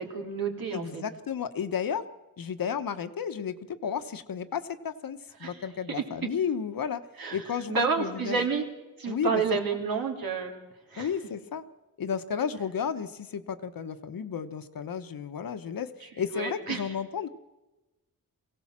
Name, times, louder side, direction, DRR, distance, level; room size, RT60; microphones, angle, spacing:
voice 1, 0.0-1.0 5.4-5.6 5.9-6.0 7.2-8.6 9.0-10.5 10.9-11.1 16.3-16.9, right 5 dB, 80° right, 2 dB, 3.3 m, -30 dB
voice 2, 0.7-2.0 2.4-7.0 7.3-8.5 9.1-9.4 11.0-11.6 12.0-17.3, left 7 dB, 75° left, 10 dB, 1.2 m, -33 dB
23.5 x 16.5 x 7.4 m, 1.1 s
wide cardioid pair, 100°, 35 cm